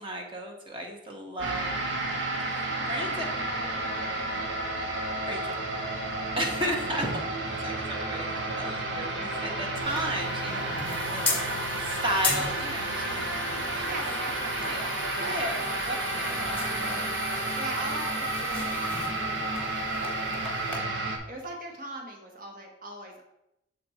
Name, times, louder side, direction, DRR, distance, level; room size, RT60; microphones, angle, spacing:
voice 1, 0.0-1.8 2.0-3.3 5.2-5.6 6.4-13.8 14.6-14.9 15.2-15.5 15.8-17.6, equal, 30° right, 1 dB, 1.1 m, -35 dB
sound 1, 1.4-21.2, right 2 dB, 85° right, 0.9 m, -31 dB
voice 2, 2.7-4.5 13.8-15.4 17.6-23.2, right 1 dB, 50° right, 2 dB, 1.3 m, -42 dB
sound 2, 9.8-20.8, left 3 dB, 10° left, 1.4 m, -37 dB
6.8 x 4.2 x 4.3 m, 0.84 s
head